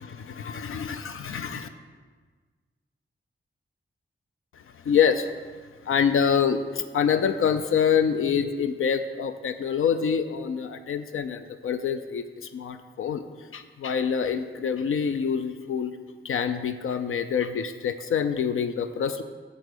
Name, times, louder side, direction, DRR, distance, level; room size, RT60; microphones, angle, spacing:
voice 1, 0.2-1.7 4.8-5.3 5.8-13.2 13.5-15.9 16.2-19.2, left 7 dB, 85° left, 9 dB, 0.4 m, -26 dB
8.1 x 4.0 x 6.5 m, 1.5 s
cardioid pair, 55°, 21 cm